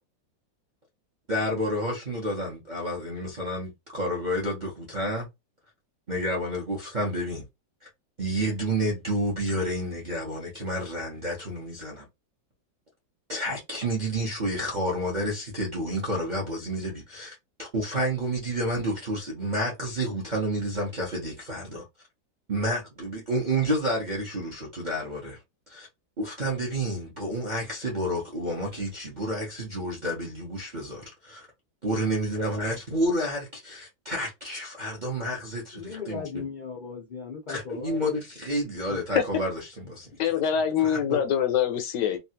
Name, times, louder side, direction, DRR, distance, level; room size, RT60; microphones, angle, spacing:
voice 1, 1.3-5.3 6.1-7.5 7.8-7.9 8.2-12.1 13.3-21.8 22.5-25.4 25.7-25.9 26.2-31.5 31.8-36.2 37.5-40.2 40.8-41.2, right 1 dB, 40° right, 0.7 m, -30 dB
voice 2, 35.7-38.2 38.9-39.0, left 6 dB, 60° left, 0.5 m, -37 dB
voice 3, 40.2-42.2, left 9 dB, 75° left, 1.1 m, -24 dB
3.2 x 2.4 x 2.8 m
omnidirectional pair, 2.0 m